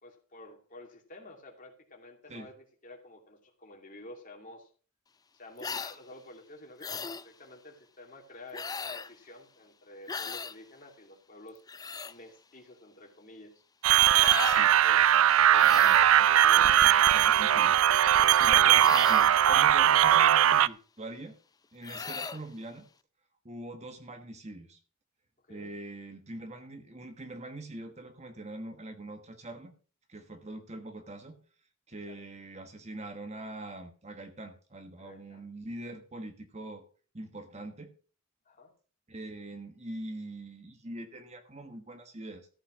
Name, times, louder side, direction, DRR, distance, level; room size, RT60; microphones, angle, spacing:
voice 1, 0.0-4.7 5.3-11.6 12.1-13.5 14.6-15.0 15.4-16.7 21.9-22.0 25.5-25.7 32.1-32.2 35.0-35.4 38.5-38.7, left 2 dB, 40° left, 2 dB, 2.6 m, -50 dB
sound 1, 5.6-6.0 6.8-7.3 8.5-9.1 10.1-10.6 11.5-12.1 14.1-14.7 15.6-16.1 18.8-19.4 21.8-22.4, left 5 dB, 20° left, 0.4 m, -37 dB
sound 2, 13.8-20.7, right 10 dB, 80° right, 0.4 m, -20 dB
voice 2, 14.4-14.7 15.6-16.0 16.6-17.8 18.3-21.4 21.7-22.9 23.4-24.8 25.5-29.7 30.1-31.4 31.9-36.8 37.1-37.9 39.1-42.5, right 1 dB, 35° right, 7 dB, 1.3 m, -43 dB
14.0 x 5.8 x 6.1 m, 0.39 s
head